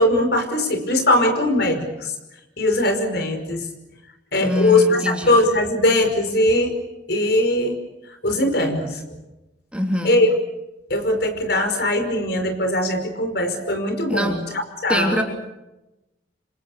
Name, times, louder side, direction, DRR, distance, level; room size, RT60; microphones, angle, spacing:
voice 1, 0.0-2.1 2.6-3.6 4.3-6.7 7.1-7.8 8.2-9.0 10.0-10.3 10.9-14.4 14.8-15.2, left 1 dB, 60° left, 7 dB, 5.4 m, -20 dB
voice 2, 4.4-5.4 9.7-10.2 14.1-14.4 14.9-15.2, equal, 5° right, 3 dB, 3.1 m, -23 dB
29.0 x 26.0 x 6.5 m, 0.95 s
head